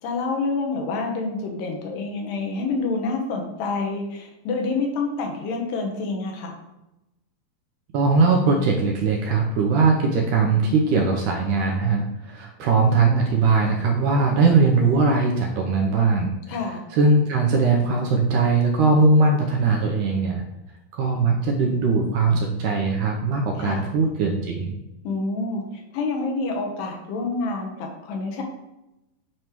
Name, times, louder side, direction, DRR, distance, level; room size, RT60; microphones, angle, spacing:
voice 1, 0.0-6.5 16.5-16.8 23.6-23.9 25.0-28.4, left 3 dB, 70° left, 1 dB, 2.7 m, -27 dB
voice 2, 7.9-16.3 16.9-20.4 20.9-24.8, right 4 dB, 80° right, 1 dB, 1.9 m, -20 dB
9.1 x 3.2 x 4.5 m, 0.92 s
omnidirectional pair, 4.5 m